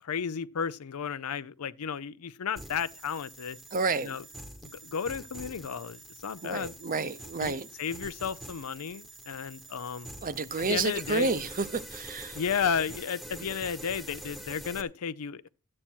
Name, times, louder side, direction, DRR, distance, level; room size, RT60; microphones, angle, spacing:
voice 1, 0.0-3.6 4.0-4.2 4.6-6.7 7.4-10.1 10.6-11.3 12.3-15.5, left 7 dB, 75° left, 0.5 m, -33 dB
sound 1, 2.6-14.8, right 1 dB, ahead, 1.0 m, -45 dB
voice 2, 3.7-4.2 6.4-7.7 10.2-12.4, right 4 dB, 40° right, 0.7 m, -30 dB
14.0 x 8.7 x 4.5 m
head